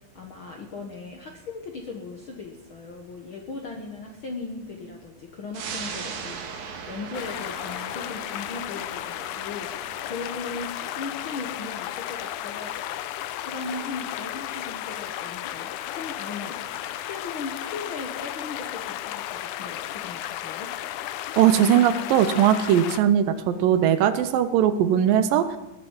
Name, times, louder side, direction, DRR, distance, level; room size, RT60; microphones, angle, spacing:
voice 1, 0.1-13.0 13.4-20.7, left 4 dB, 60° left, 1 dB, 1.4 m, -38 dB
sound 1, 5.5-16.5 16.9-17.0, right 6 dB, 60° right, 2.7 m, -41 dB
sound 2, 7.1-23.0, left 13 dB, 80° left, 1.8 m, -34 dB
voice 2, 21.4-25.6, right 9 dB, 80° right, 11 dB, 2.5 m, -20 dB
19.0 x 7.7 x 7.3 m, 1.0 s
omnidirectional pair, 4.1 m